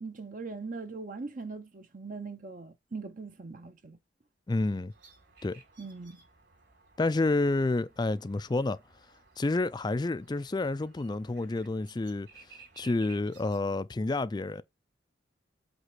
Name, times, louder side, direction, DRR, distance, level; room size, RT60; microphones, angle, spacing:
voice 1, 0.0-4.0 5.8-6.2, right 4 dB, 45° right, 0.7 m, -41 dB
voice 2, 4.5-4.9 5.4-5.6 7.0-8.8 9.4-12.3 12.8-14.6, left 2 dB, 20° left, 0.4 m, -29 dB
sound 1, 4.9-13.6, right 4 dB, 60° right, 4.5 m, -58 dB
8.0 x 3.2 x 6.0 m
head